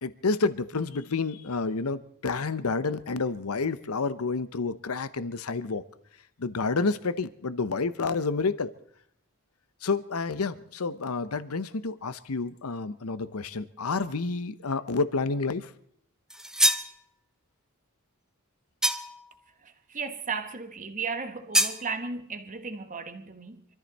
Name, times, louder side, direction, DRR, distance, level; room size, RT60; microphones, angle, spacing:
voice 1, 0.0-5.8 6.4-8.7 9.8-15.7, left 4 dB, 85° left, 0.8 m, -29 dB
sound 1, 16.3-16.9 18.8-19.3 21.5-21.8, right 1 dB, 5° right, 0.9 m, -24 dB
voice 2, 19.6-23.7, right 5 dB, 35° right, 1.4 m, -35 dB
25.5 x 14.0 x 4.2 m
head